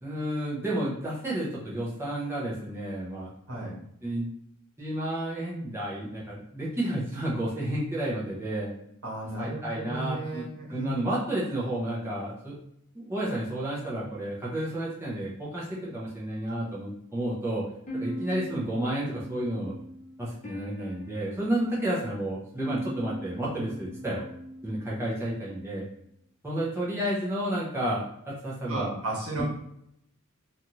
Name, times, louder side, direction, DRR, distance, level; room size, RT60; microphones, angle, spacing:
voice 1, 0.0-3.3 4.0-4.3 4.8-8.7 9.4-12.6 12.9-17.7 17.9-19.8 20.2-24.2 24.6-25.8 26.4-28.9 29.3-29.4, right 1 dB, 10° right, -6 dB, 0.6 m, -31 dB
voice 2, 3.5-3.8 9.0-10.9 28.7-29.4, right 2 dB, 80° right, -4 dB, 1.3 m, -34 dB
sound 1, 17.9-25.0, equal, 35° left, 0.7 m, -40 dB
2.7 x 2.4 x 2.9 m, 0.74 s
head